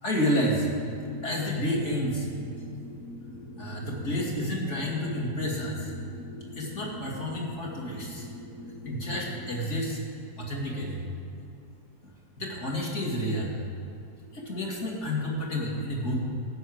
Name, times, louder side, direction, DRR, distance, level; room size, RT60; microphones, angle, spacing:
voice 1, 0.0-0.7 1.2-2.3 3.6-5.9 6.6-8.3 8.8-10.0 10.4-11.0 12.4-13.5 14.3-16.2, equal, 40° left, -3 dB, 2.4 m, -30 dB
sound 1, 0.9-9.6, left 2 dB, 65° left, 2.1 m, -43 dB
14.5 x 5.8 x 7.8 m, 2.6 s
omnidirectional pair, 1.9 m